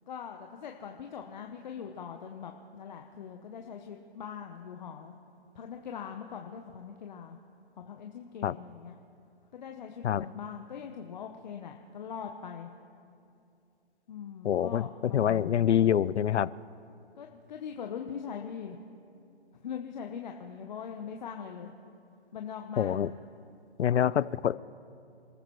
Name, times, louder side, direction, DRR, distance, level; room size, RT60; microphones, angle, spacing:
voice 1, 0.1-5.1 5.5-7.4 7.8-8.9 9.5-12.7 14.1-15.7 17.2-18.8 19.6-21.7 22.3-23.0, left 7 dB, 40° left, 3 dB, 0.9 m, -41 dB
voice 2, 14.4-16.5 22.8-23.1 23.8-24.6, left 9 dB, 90° left, 20 dB, 0.5 m, -26 dB
28.5 x 14.5 x 3.1 m, 2.6 s
hypercardioid pair, 155°, 33 cm